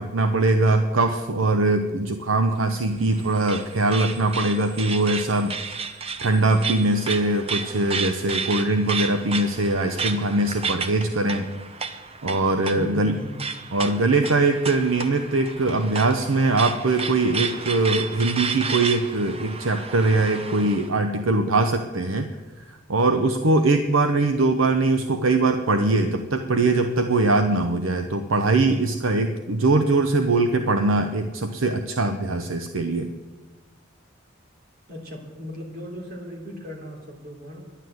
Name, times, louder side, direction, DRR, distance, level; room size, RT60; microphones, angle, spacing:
voice 1, 0.0-5.5 6.2-11.5 12.2-13.2 13.7-22.3 22.7-33.1, right 2 dB, 75° right, 7 dB, 0.8 m, -22 dB
sound 1, 2.7-20.9, right 5 dB, 30° right, 0.8 m, -32 dB
voice 2, 12.8-13.4 34.9-37.6, equal, 50° right, 0 dB, 3.3 m, -37 dB
11.5 x 11.0 x 7.8 m, 1.3 s
head